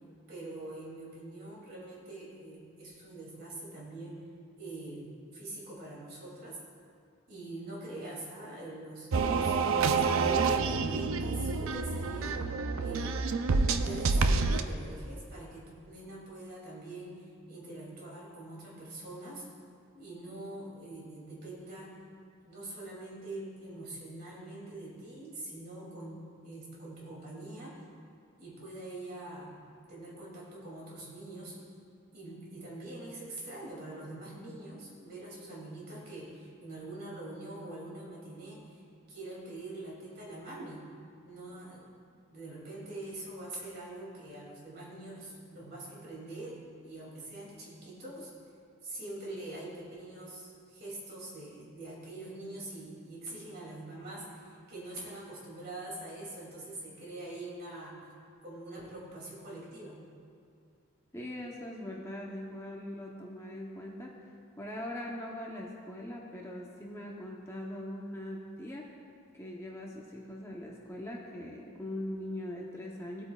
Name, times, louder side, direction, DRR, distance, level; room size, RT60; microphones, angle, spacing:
voice 1, 0.3-4.2 4.6-6.6 7.3-9.6 9.9-12.4 12.8-13.3 13.7-19.4 19.9-21.9 22.4-27.8 28.4-31.6 32.1-38.8 39.1-40.9 41.2-41.9 42.3-48.3 48.8-58.1 58.4-60.0, right 2 dB, 50° right, -5 dB, 2.7 m, -44 dB
sound 1, 9.1-14.6, right 4 dB, 80° right, 0.5 m, -28 dB
voice 2, 61.1-64.1 64.6-68.9 69.3-73.2, left 1 dB, 15° left, -2 dB, 0.8 m, -41 dB
18.0 x 8.5 x 2.4 m, 2.4 s
head